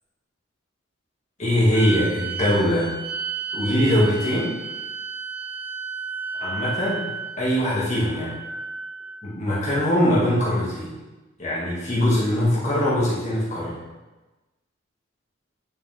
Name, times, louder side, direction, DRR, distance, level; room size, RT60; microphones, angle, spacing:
voice 1, 1.4-2.9 3.5-4.5 6.4-7.1 7.4-8.3 9.2-10.9 11.4-13.8, equal, 35° left, -7 dB, 2.2 m, -22 dB
sound 1, 1.7-9.2, right 4 dB, 10° right, 0.5 m, -33 dB
9.3 x 4.8 x 3.6 m, 1.1 s
head